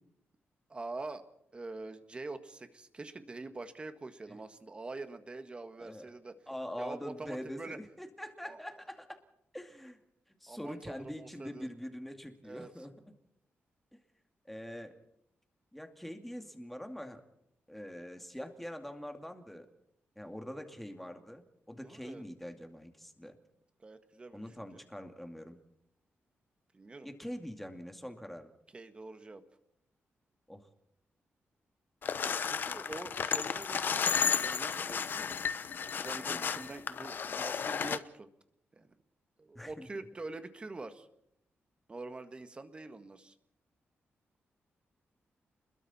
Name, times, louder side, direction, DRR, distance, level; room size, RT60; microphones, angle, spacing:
voice 1, 0.7-1.2 1.5-6.4 6.8-7.8 8.4-8.6 10.5-11.7 12.4-12.7 21.8-22.2 23.8-24.8 26.7-27.1 28.7-29.4 32.2-35.2 35.8-38.3 38.7-38.9 39.4-41.1 41.9-43.3, right 3 dB, 25° right, 9 dB, 1.6 m, -45 dB
voice 2, 6.5-9.2 9.5-10.0 10.4-12.9 14.5-15.0 15.7-17.2 17.7-19.7 20.2-23.4 24.3-25.6 27.0-28.5 30.5-30.7 36.2-36.6 39.5-39.9, equal, 5° left, 5 dB, 2.3 m, -44 dB
sound 1, 32.0-38.0, left 6 dB, 50° left, 0.9 m, -33 dB
30.0 x 21.5 x 4.3 m, 0.77 s
wide cardioid pair, 135°, 4 cm